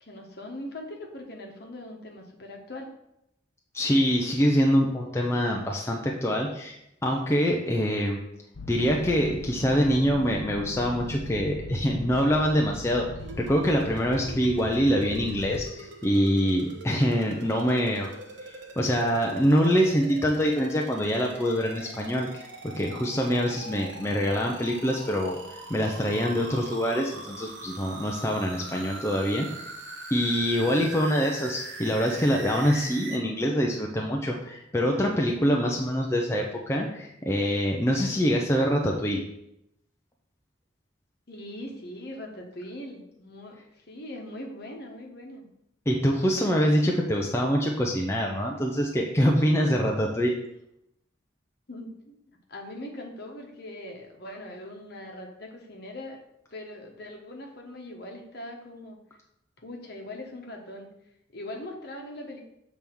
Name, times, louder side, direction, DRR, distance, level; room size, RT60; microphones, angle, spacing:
voice 1, 0.0-2.9 41.3-45.5 51.7-56.2 56.5-59.0 59.6-60.9 61.3-62.4, left 1 dB, 55° left, 1 dB, 1.3 m, -41 dB
voice 2, 3.7-6.8 7.0-8.2 8.7-13.1 13.4-18.1 18.8-22.5 22.8-25.4 25.7-29.7 30.1-39.2 45.9-50.3, equal, 15° left, 0 dB, 0.6 m, -25 dB
sound 1, 8.5-15.6, left 1 dB, 90° left, 0.8 m, -39 dB
sound 2, 13.2-33.2, right 2 dB, 65° right, 1.0 m, -42 dB
7.2 x 3.5 x 6.1 m, 0.80 s
head